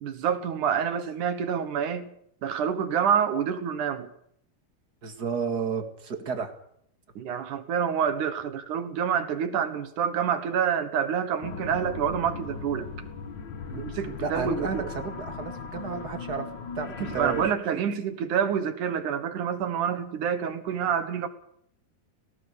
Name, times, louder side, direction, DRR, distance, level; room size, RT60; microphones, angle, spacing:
voice 1, 0.0-2.1 2.4-4.1 6.3-6.4 7.2-12.9 13.8-14.9 17.0-21.3, right 8 dB, 65° right, 10 dB, 2.7 m, -27 dB
voice 2, 5.0-6.5 13.7-13.8 14.2-16.5 16.8-17.4 17.7-17.8, right 5 dB, 35° right, 6 dB, 2.1 m, -32 dB
sound 1, 11.4-17.5, left 5 dB, 60° left, 1.2 m, -38 dB
18.0 x 17.5 x 8.4 m, 0.69 s
omnidirectional pair, 4.2 m